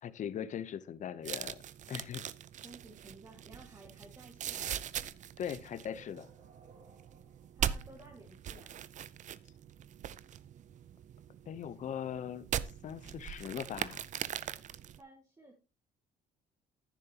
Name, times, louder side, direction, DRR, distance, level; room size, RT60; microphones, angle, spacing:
voice 1, 0.0-1.6 1.9-2.3 5.4-6.3 11.5-12.5 12.8-14.0, left 9 dB, 45° left, 0.7 m, -40 dB
sound 1, 1.2-15.0, right 10 dB, 45° right, 0.5 m, -41 dB
voice 2, 2.6-4.7 7.5-8.7 15.0-15.5, right 2 dB, 20° right, 1.8 m, -55 dB
sound 2, 5.1-14.5, right 3 dB, 65° right, 2.5 m, -66 dB
10.5 x 10.0 x 2.9 m
cardioid pair, 110°, 17 cm